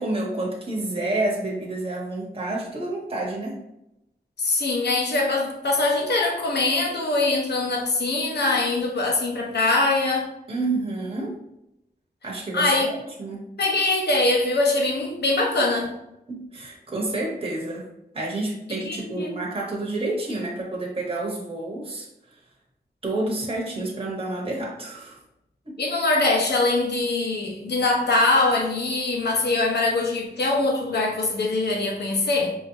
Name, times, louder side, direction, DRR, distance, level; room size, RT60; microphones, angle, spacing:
voice 1, 0.0-3.6 10.5-11.4 12.2-13.4 16.3-17.8 18.1-22.1 23.0-25.2 25.6-25.8, right 2 dB, 35° right, -3 dB, 1.0 m, -29 dB
voice 2, 4.4-10.3 12.5-13.0 13.6-15.9 18.8-19.4 25.8-32.6, left 2 dB, 85° left, 0 dB, 0.9 m, -23 dB
4.7 x 2.8 x 2.7 m, 0.85 s
wide cardioid pair, 90°, 17 cm